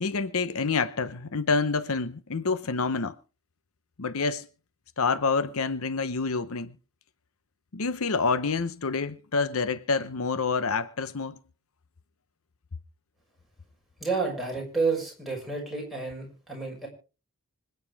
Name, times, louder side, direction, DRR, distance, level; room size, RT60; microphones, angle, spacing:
voice 1, 0.0-3.2 4.0-4.5 5.0-6.8 7.7-11.4, left 4 dB, 70° left, 0.8 m, -27 dB
voice 2, 14.0-16.9, right 4 dB, ahead, 6.3 m, -30 dB
25.5 x 9.4 x 3.5 m
head